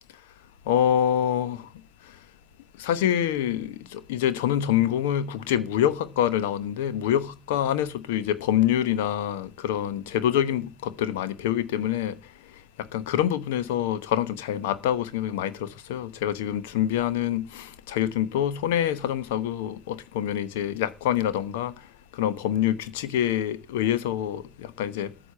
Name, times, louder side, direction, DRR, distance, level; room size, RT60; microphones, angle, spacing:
voice 1, 0.7-1.7 2.8-12.2 12.9-21.7 22.1-25.1, left 10 dB, 85° left, 1.0 m, -26 dB
14.0 x 6.1 x 6.8 m
hypercardioid pair, 50°, 0 cm